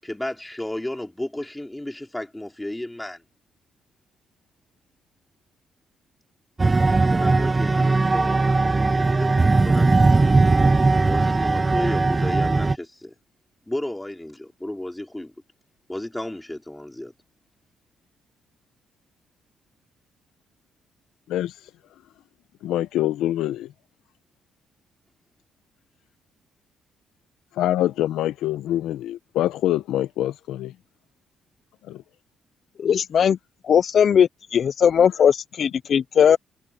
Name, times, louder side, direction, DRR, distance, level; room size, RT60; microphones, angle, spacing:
voice 1, 0.0-3.2 6.8-9.9 10.5-10.6 10.9-13.1 13.7-15.3 15.9-17.1, left 1 dB, 10° left, 4.7 m, -33 dB
sound 1, 6.6-12.8, right 3 dB, 25° right, 0.6 m, -19 dB
voice 2, 22.6-23.7 27.6-30.7 31.9-32.0, left 13 dB, 85° left, 0.8 m, -25 dB
voice 3, 32.8-33.4 33.6-36.4, left 8 dB, 55° left, 0.4 m, -18 dB
cardioid pair, 90°, 0 cm